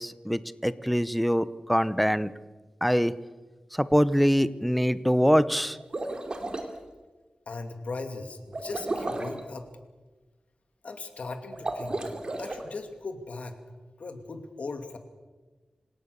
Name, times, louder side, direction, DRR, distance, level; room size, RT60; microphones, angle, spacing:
voice 1, 0.0-2.3 2.8-3.1 3.7-5.8, equal, ahead, 15 dB, 0.8 m, -24 dB
sound 1, 5.8-6.7 8.5-9.4 11.5-12.6, right 2 dB, 40° right, 2.8 m, -33 dB
voice 2, 7.5-9.7 10.8-12.0 12.4-13.6 14.0-15.0, left 3 dB, 70° left, 6 dB, 2.6 m, -38 dB
26.5 x 17.5 x 6.8 m, 1.3 s
wide cardioid pair, 115°, 2 cm